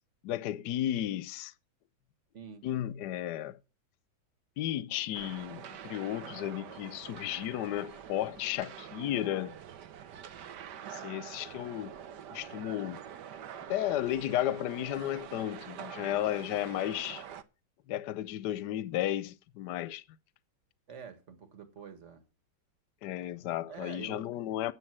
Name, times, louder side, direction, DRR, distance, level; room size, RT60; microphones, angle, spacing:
voice 1, 0.2-1.5 2.6-3.6 4.6-9.5 10.9-11.9 12.3-13.0 13.7-17.2 17.9-20.0 23.0-24.7, left 13 dB, 65° left, 1.2 m, -33 dB
voice 2, 2.3-2.6 9.0-9.2 20.9-22.2 23.7-24.3, right 6 dB, 35° right, 1.8 m, -47 dB
sound 1, 5.1-17.4, right 9 dB, 60° right, 1.3 m, -46 dB
9.4 x 7.5 x 7.6 m
omnidirectional pair, 2.2 m